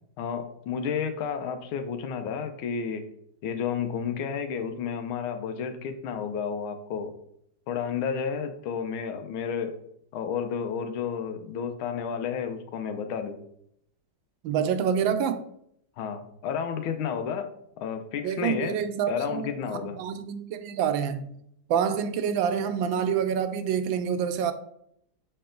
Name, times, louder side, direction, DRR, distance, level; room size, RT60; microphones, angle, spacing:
voice 1, 0.2-3.0 3.4-7.1 7.7-9.8 10.1-13.4 16.0-17.5 17.8-18.8 19.1-20.0, left 7 dB, 85° left, 1.6 m, -31 dB
voice 2, 14.4-15.4 18.2-21.3 21.7-24.5, right 8 dB, 80° right, 1.3 m, -27 dB
6.7 x 4.3 x 3.8 m
omnidirectional pair, 2.2 m